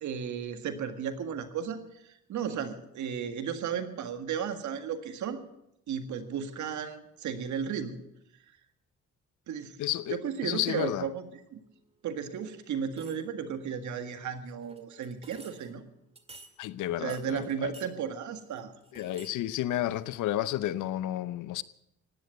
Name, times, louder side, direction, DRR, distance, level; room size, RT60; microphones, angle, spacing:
voice 1, 0.0-5.4 5.9-8.0 9.5-9.8 10.1-11.6 12.0-15.8 17.0-18.7, right 7 dB, 75° right, 1.8 m, -34 dB
voice 2, 9.8-11.1 16.6-17.7 18.9-21.6, left 13 dB, 80° left, 0.7 m, -31 dB
sound 1, 10.6-11.0 12.4-12.5 12.9-13.5 14.5-15.7 16.1-16.6 17.1-17.9 18.4-19.4 19.7-20.4 20.8-20.9, right 2 dB, 20° right, 1.9 m, -52 dB
16.5 x 10.0 x 7.9 m
cardioid pair, 90°, 30 cm